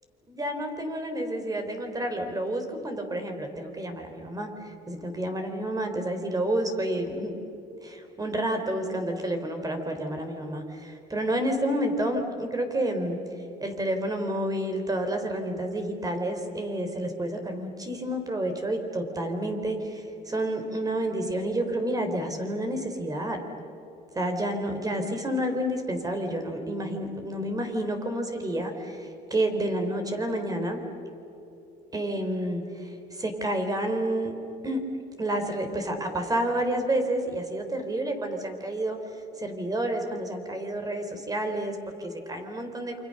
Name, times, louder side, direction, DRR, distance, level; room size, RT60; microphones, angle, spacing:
voice 1, 0.3-7.3 7.8-13.2 13.6-23.4 24.1-30.8 31.9-34.3 34.6-34.8 35.2-39.0 39.4-43.0, right 1 dB, 20° right, 5 dB, 4.1 m, -29 dB
28.5 x 26.0 x 6.7 m, 3.0 s
cardioid pair, 110°, 17 cm